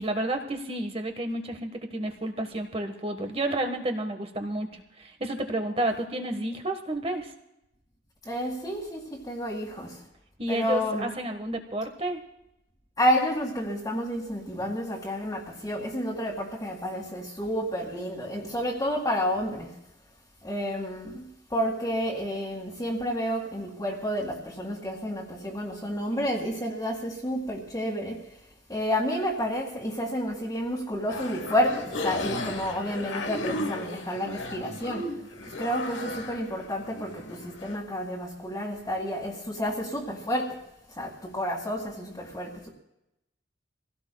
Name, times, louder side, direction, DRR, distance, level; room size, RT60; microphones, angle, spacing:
voice 1, 0.0-7.3 10.4-12.2 26.1-26.3, right 1 dB, 30° right, 6 dB, 1.5 m, -31 dB
voice 2, 8.2-10.0 10.5-11.1 13.0-19.8 20.4-28.2 28.7-35.1 35.6-40.6 40.9-42.7, equal, 20° left, -5 dB, 2.1 m, -30 dB
sound 1, 31.1-37.8, left 2 dB, 70° left, 1.3 m, -35 dB
25.5 x 17.0 x 2.3 m, 0.87 s
head